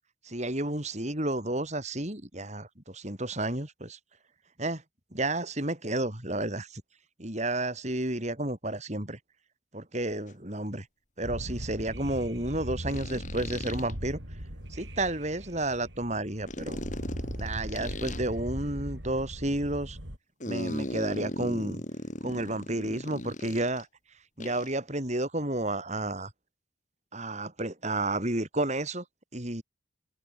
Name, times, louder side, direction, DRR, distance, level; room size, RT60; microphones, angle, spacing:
voice 1, 0.2-4.0 4.6-4.8 5.1-6.8 7.2-9.2 9.7-10.9 11.2-14.2 14.7-16.8 17.4-20.0 20.5-21.8 22.2-23.9 24.4-26.3 27.1-29.0 29.3-29.6, right 1 dB, 35° right, 4.1 m, -31 dB
sound 1, 10.3-10.4 12.9-13.9 16.5-18.2 20.4-23.8 24.4-24.8, left 1 dB, 40° left, 5.9 m, -37 dB
sound 2, 11.2-20.2, equal, 70° right, 8.0 m, -39 dB
head